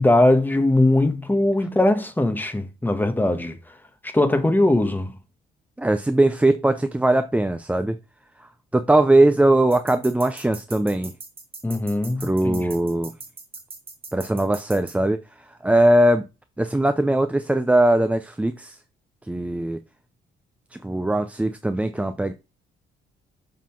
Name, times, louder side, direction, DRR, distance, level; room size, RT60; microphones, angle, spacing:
voice 1, 0.0-3.5 4.1-5.1 11.6-12.7, left 1 dB, 10° left, 1.3 m, -20 dB
voice 2, 5.8-8.0 8.7-11.1 12.2-13.1 14.1-15.2 15.6-16.3 16.6-18.8 19.2-19.8 20.7-22.3, right 1 dB, 5° right, 0.5 m, -20 dB
sound 1, 9.7-15.0, right 3 dB, 30° right, 1.8 m, -40 dB
7.3 x 3.8 x 5.8 m
cardioid pair, 90°, 20 cm